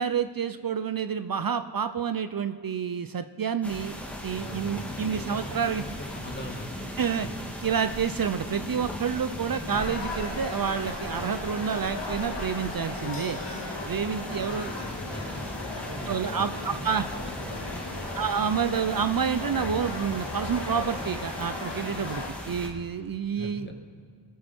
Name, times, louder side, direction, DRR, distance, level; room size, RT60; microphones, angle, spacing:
voice 1, 0.0-3.9 4.2-5.8 7.0-7.3 7.6-13.4 13.9-14.7 16.1-17.1 18.1-23.7, right 7 dB, 55° right, 11 dB, 0.6 m, -29 dB
sound 1, 3.6-22.7, left 1 dB, 5° left, 2.0 m, -38 dB
voice 2, 4.1-5.7 6.1-6.8 7.2-7.3 14.3-16.8 17.1-18.1 23.3-23.7, equal, 25° left, 2 dB, 2.1 m, -42 dB
sound 2, 9.7-22.3, left 2 dB, 75° left, 1.8 m, -37 dB
19.5 x 9.4 x 4.4 m, 2.2 s
wide cardioid pair, 50°, 42 cm